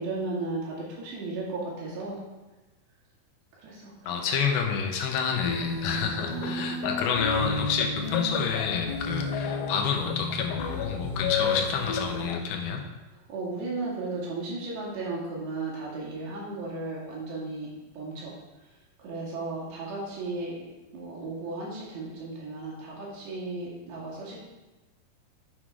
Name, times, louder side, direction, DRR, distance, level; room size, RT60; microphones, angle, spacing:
voice 1, 0.0-2.2 3.6-3.9 6.2-6.8 13.1-18.4 19.0-20.6 20.9-24.4, right 3 dB, 80° right, -4 dB, 4.3 m, -35 dB
voice 2, 4.1-12.8, left 6 dB, 75° left, 2 dB, 2.7 m, -29 dB
sound 1, 5.4-12.3, left 2 dB, 35° left, 0.6 m, -34 dB
sound 2, 6.2-12.4, left 9 dB, 90° left, 2.8 m, -34 dB
8.6 x 5.9 x 4.8 m, 1.1 s
omnidirectional pair, 4.9 m